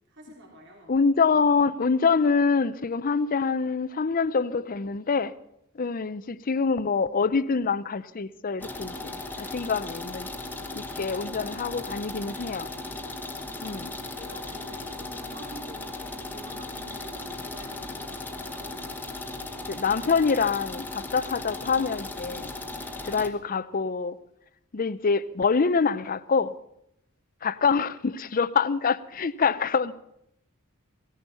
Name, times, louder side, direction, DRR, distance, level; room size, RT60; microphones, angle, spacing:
voice 1, 0.1-0.9 13.4-13.8 14.1-18.8, right 1 dB, 55° right, -1 dB, 3.7 m, -48 dB
voice 2, 0.9-5.3 5.8-10.3 10.7-12.7 13.6-13.9 19.7-22.5 23.0-24.2 24.7-26.5 27.4-29.9, left 5 dB, 40° left, 16 dB, 0.6 m, -25 dB
sound 1, 8.6-23.3, left 2 dB, 10° left, 1.2 m, -37 dB
17.0 x 14.5 x 5.6 m, 0.75 s
head